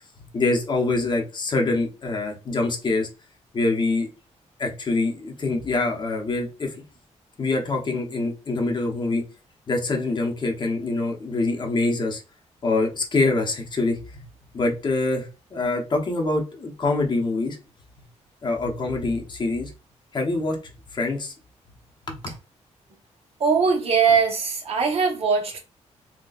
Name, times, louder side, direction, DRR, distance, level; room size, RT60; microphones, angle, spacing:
voice 1, 0.3-3.1 3.5-4.1 4.6-6.7 7.4-9.2 9.7-12.2 12.6-14.2 14.5-17.6 18.4-19.7 20.1-20.6 20.9-21.3 22.1-22.2, left 3 dB, 40° left, 0.8 m, -25 dB
voice 2, 23.4-25.6, right 5 dB, 55° right, 0.9 m, -21 dB
3.9 x 2.2 x 2.3 m
cardioid pair, 115°, 12 cm